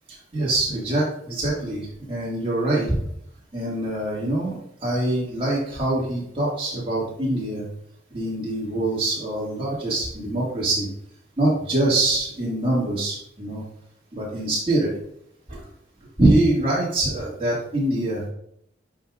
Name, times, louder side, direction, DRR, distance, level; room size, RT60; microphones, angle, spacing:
voice 1, 0.3-3.0 3.5-7.6 8.1-10.9 11.4-13.6 14.1-14.9 15.5-15.6 16.2-18.3, right 1 dB, 30° right, -7 dB, 2.1 m, -24 dB
9.6 x 5.2 x 2.5 m, 0.70 s
head